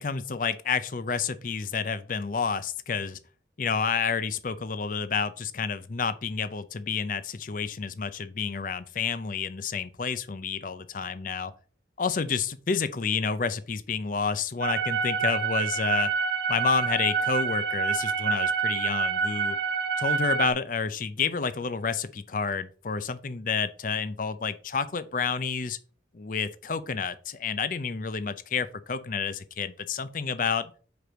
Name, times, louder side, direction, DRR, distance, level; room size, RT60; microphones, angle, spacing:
voice 1, 0.0-3.2 3.6-11.5 12.0-16.1 16.5-19.6 20.0-25.8 26.1-30.7, left 5 dB, 45° left, 0.5 m, -29 dB
sound 1, 14.6-20.5, right 5 dB, 70° right, 0.7 m, -27 dB
5.0 x 4.7 x 6.1 m
head